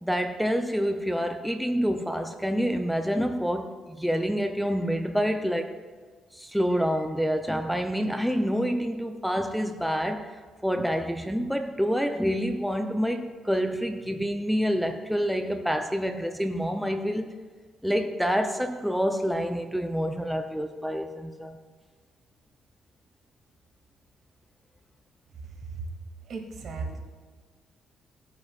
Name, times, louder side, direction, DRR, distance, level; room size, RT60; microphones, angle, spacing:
voice 1, 0.0-5.7 6.3-17.3 17.8-21.6, equal, ahead, 0.6 m, -27 dB
voice 2, 26.3-27.0, right 4 dB, 65° right, 2.2 m, -35 dB
18.5 x 9.5 x 2.5 m
cardioid pair, 90°, 0 cm